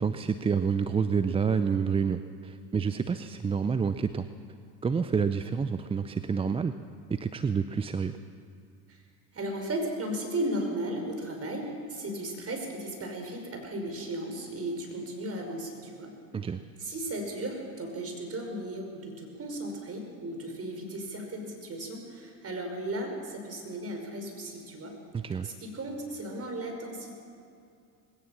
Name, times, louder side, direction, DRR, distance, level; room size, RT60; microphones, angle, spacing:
voice 1, 0.0-4.3 4.8-6.8 7.1-8.2 16.3-16.6 25.1-25.5, right 6 dB, 10° right, 10 dB, 0.4 m, -28 dB
voice 2, 9.3-16.1 16.8-24.9 25.4-27.1, right 1 dB, 30° right, 3 dB, 5.5 m, -35 dB
20.0 x 17.5 x 7.4 m, 2.4 s
hypercardioid pair, 85°, 48 cm